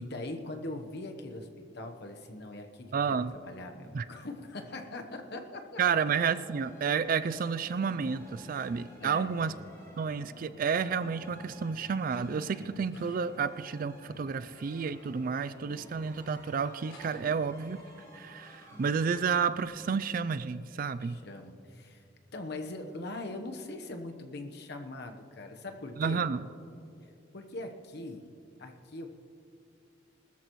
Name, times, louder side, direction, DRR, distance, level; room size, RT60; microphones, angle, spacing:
voice 1, 0.0-5.8 8.6-8.7 9.0-9.3 21.0-22.0 22.3-26.3 27.3-28.3 28.6-29.1, left 2 dB, 55° left, 5 dB, 1.0 m, -41 dB
voice 2, 2.9-3.3 3.9-4.0 5.8-9.5 10.0-17.8 18.1-21.2 26.0-26.4, right 6 dB, 45° right, 14 dB, 0.3 m, -31 dB
sound 1, 5.8-19.7, left 1 dB, 20° left, 3.9 m, -53 dB
sound 2, 11.1-17.9, equal, 85° left, 4.0 m, -57 dB
20.5 x 13.0 x 3.1 m, 2.6 s
head